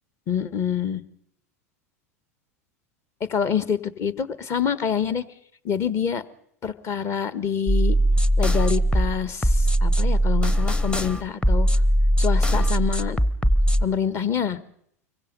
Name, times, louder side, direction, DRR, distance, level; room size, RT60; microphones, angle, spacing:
voice 1, 0.3-1.0 3.2-5.2 5.6-6.2 6.6-8.0 8.4-11.7 12.2-13.2 13.8-14.6, left 7 dB, 35° left, 15 dB, 1.5 m, -26 dB
sound 1, 7.7-13.8, equal, 10° left, 1.0 m, -20 dB
25.5 x 23.0 x 5.4 m, 0.69 s
figure-of-eight pair, 85°, 8 cm